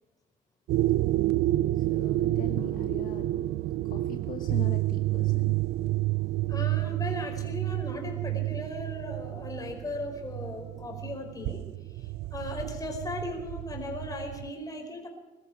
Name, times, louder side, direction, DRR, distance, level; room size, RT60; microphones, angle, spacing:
sound 1, 0.7-14.5, right 16 dB, 75° right, 0.5 m, -29 dB
voice 1, 1.7-3.3 3.9-5.6, left 8 dB, 55° left, 4 dB, 1.3 m, -41 dB
voice 2, 6.5-11.6 12.0-15.1, left 2 dB, 20° left, 2 dB, 4.9 m, -37 dB
22.5 x 13.5 x 4.8 m, 1.1 s
cardioid pair, 110°, 17 cm